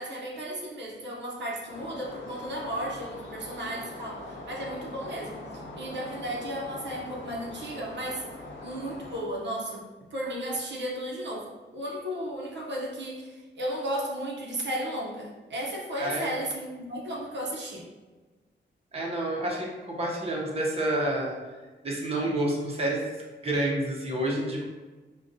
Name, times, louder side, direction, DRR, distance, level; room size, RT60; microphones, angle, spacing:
voice 1, 0.0-8.2 8.6-17.9, equal, 65° right, -3 dB, 0.7 m, -34 dB
sound 1, 1.7-9.2, left 2 dB, 85° left, 0.7 m, -42 dB
voice 2, 16.0-16.4 18.9-21.4 21.8-23.1 23.4-24.6, right 1 dB, 30° right, -2 dB, 0.7 m, -29 dB
4.9 x 2.2 x 2.6 m, 1.3 s
wide cardioid pair, 130°, 20 cm